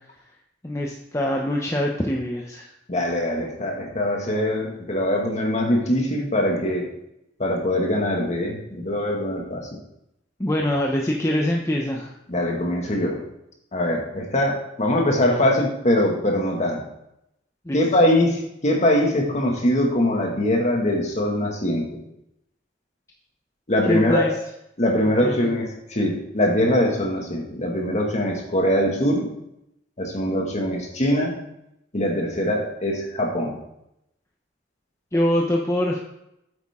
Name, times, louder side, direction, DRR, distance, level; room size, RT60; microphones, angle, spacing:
voice 1, 0.6-2.7 10.4-12.1 17.6-17.8 23.9-24.3 25.2-25.4 35.1-36.0, left 1 dB, 15° left, -1 dB, 0.8 m, -24 dB
voice 2, 2.9-6.9 7.4-9.7 12.3-13.2 13.7-16.8 17.7-22.0 23.7-24.3 24.8-29.3 30.0-31.4 31.9-33.6, left 1 dB, 40° left, 0 dB, 2.0 m, -22 dB
9.0 x 8.4 x 3.7 m, 0.81 s
head